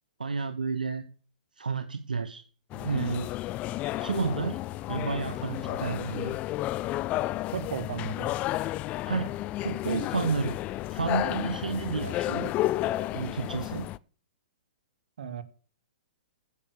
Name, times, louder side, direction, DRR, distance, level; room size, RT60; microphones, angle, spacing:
voice 1, 0.2-1.0 1.6-2.4 2.7-3.3 4.0-4.6 4.9-6.4 9.1-10.6 10.9-12.5 13.1-13.9, right 5 dB, 85° right, 1.0 m, -31 dB
sound 1, 2.7-14.0, left 16 dB, 30° left, 0.5 m, -32 dB
voice 2, 7.5-8.3 15.2-15.4, right 6 dB, 65° right, 2.0 m, -35 dB
15.5 x 7.0 x 6.7 m
hypercardioid pair, 120°, 5 cm